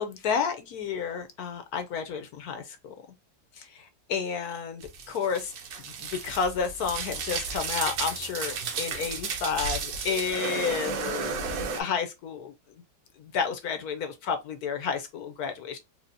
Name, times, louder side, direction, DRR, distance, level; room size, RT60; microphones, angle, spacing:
voice 1, 0.0-2.9 3.6-5.5 6.0-12.5 13.2-15.8, left 6 dB, 70° left, 1.0 m, -31 dB
sound 1, 4.8-11.8, right 5 dB, 80° right, 1.5 m, -33 dB
4.5 x 2.7 x 2.6 m
omnidirectional pair, 1.9 m